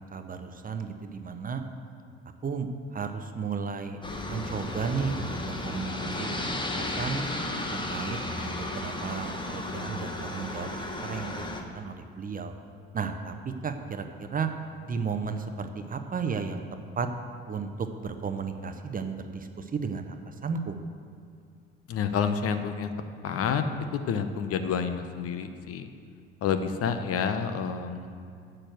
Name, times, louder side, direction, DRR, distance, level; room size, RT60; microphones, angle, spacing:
voice 1, 0.0-1.6 2.4-4.0 4.3-7.2 7.7-12.5 12.9-14.5 14.8-16.6 17.0-17.1 17.5-20.8, right 5 dB, 25° right, 7 dB, 0.7 m, -34 dB
Aircraft, 4.0-11.6, left 2 dB, 15° left, 1.2 m, -34 dB
voice 2, 21.9-22.9 23.2-23.6 23.9-25.9 26.4-28.2, left 7 dB, 45° left, 8 dB, 0.8 m, -29 dB
7.6 x 6.3 x 7.8 m, 2.3 s
figure-of-eight pair, 55°, 32 cm